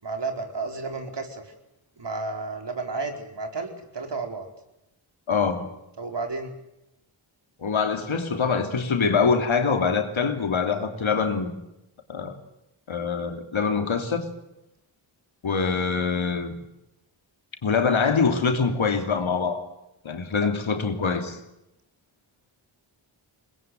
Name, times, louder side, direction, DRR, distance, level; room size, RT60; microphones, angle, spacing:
voice 1, 0.0-1.5 2.0-4.5 6.0-6.5 20.4-20.5, right 3 dB, 55° right, 4.6 m, -32 dB
voice 2, 5.3-5.7 7.6-11.5 12.1-12.3 12.9-14.3 15.4-16.5 17.6-19.6 20.0-21.4, left 5 dB, 70° left, 3.2 m, -24 dB
21.5 x 20.5 x 9.4 m
cardioid pair, 45°, 49 cm